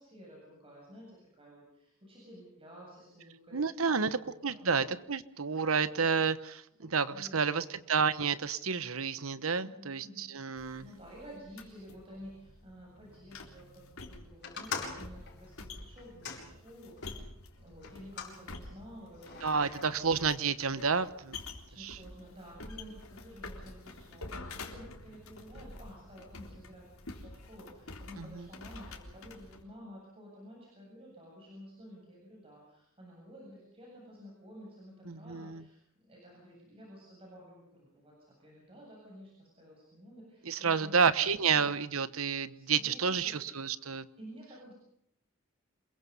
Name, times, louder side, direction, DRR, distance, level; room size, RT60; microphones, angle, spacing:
voice 1, 0.0-4.8 6.8-7.5 9.6-10.3 10.8-17.2 17.6-20.1 21.7-38.1 38.4-41.7 42.5-43.6 44.2-44.7, equal, 25° right, -3 dB, 7.8 m, -52 dB
voice 2, 3.5-10.9 19.4-21.4 21.8-22.0 28.2-28.5 35.1-35.6 40.4-44.1, right 5 dB, 85° right, 14 dB, 1.1 m, -30 dB
sound 1, 10.6-29.6, left 2 dB, 85° left, 3.7 m, -48 dB
sound 2, 14.4-17.2 17.8-18.4 19.2-19.8, left 5 dB, 55° left, 5.7 m, -42 dB
27.5 x 22.0 x 5.5 m, 0.76 s
head